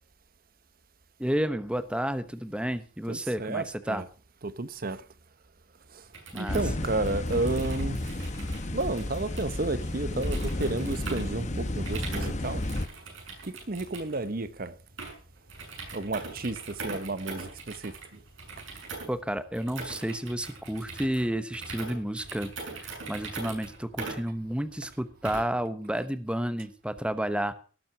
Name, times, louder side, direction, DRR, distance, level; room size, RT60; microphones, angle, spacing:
voice 1, 1.2-4.0 6.3-6.6 19.1-27.5, right 1 dB, 5° right, 1.0 m, -31 dB
voice 2, 3.1-4.0 4.4-5.0 5.9-6.0 6.3-8.2 8.7-12.6 13.4-14.7 15.9-17.9, right 2 dB, 50° right, 1.0 m, -32 dB
sound 1, 6.0-25.7, right 3 dB, 90° right, 6.6 m, -42 dB
sound 2, 6.5-12.9, left 1 dB, 40° left, 1.1 m, -32 dB
18.0 x 7.8 x 5.9 m
head